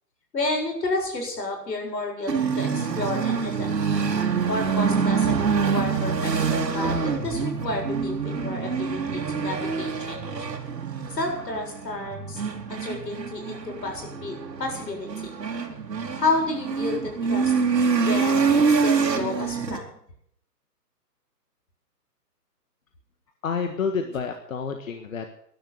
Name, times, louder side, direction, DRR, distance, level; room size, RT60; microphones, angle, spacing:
voice 1, 0.3-3.7 4.5-10.5 11.1-12.4 12.7-15.3 16.2-17.5 18.1-19.9, left 2 dB, 85° left, 2 dB, 7.6 m, -31 dB
sound 1, 2.3-19.8, right 5 dB, 85° right, 3.1 m, -26 dB
voice 2, 23.4-25.3, left 5 dB, 55° left, 6 dB, 1.7 m, -29 dB
13.5 x 11.5 x 8.0 m, 0.69 s
hypercardioid pair, 165°, 49 cm